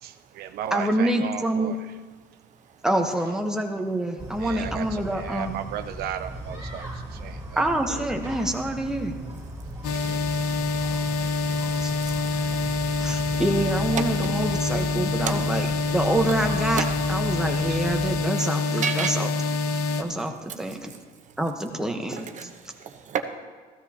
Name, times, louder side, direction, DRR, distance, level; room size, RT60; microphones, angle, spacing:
voice 1, 0.0-1.8 4.4-7.6 7.9-8.0 9.9-10.2 17.6-17.8, right 10 dB, 65° right, 9 dB, 0.4 m, -35 dB
voice 2, 0.7-1.7 2.8-5.5 7.6-9.1 11.8-11.9 13.0-15.7 15.9-19.3 20.0-20.9 21.4-22.5, right 1 dB, 5° right, 3 dB, 1.1 m, -26 dB
sound 1, 4.2-18.2, equal, 20° right, 2.6 m, -38 dB
sound 2, 9.8-20.0, left 4 dB, 85° left, 0.8 m, -26 dB
voice 3, 14.0-14.4 15.3-15.4 16.8-16.9 18.8-19.3 22.1-23.2, right 7 dB, 45° right, 6 dB, 1.0 m, -30 dB
15.0 x 13.0 x 2.8 m, 1.4 s
cardioid pair, 110°, 17 cm